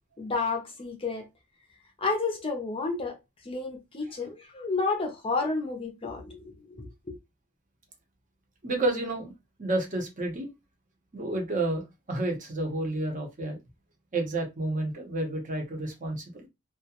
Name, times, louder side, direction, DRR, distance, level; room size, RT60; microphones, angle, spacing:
voice 1, 0.2-1.3 2.0-3.2 3.4-7.2, left 3 dB, 25° left, 0.5 m, -31 dB
voice 2, 8.6-9.3 9.6-10.5 11.1-13.6 14.1-16.5, right 2 dB, 40° right, 0.7 m, -30 dB
2.3 x 2.1 x 2.8 m
head